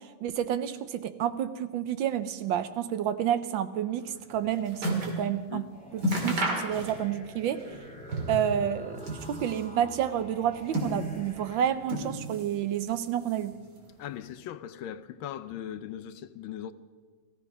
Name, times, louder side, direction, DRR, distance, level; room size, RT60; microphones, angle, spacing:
voice 1, 0.0-5.6 5.9-7.6 8.3-13.5, right 10 dB, 75° right, 1.4 m, -30 dB
sound 1, 4.1-5.2 5.6-5.7 6.0-7.3 7.6-8.5 8.9-9.7 10.4-11.4 11.8-12.6 12.8-13.6 14.3-14.4, right 1 dB, 50° right, 2.8 m, -32 dB
sound 2, 5.7-11.7, left 1 dB, 5° left, 2.2 m, -47 dB
voice 2, 14.0-16.7, left 10 dB, 75° left, 1.4 m, -39 dB
15.5 x 14.5 x 5.4 m
omnidirectional pair, 2.3 m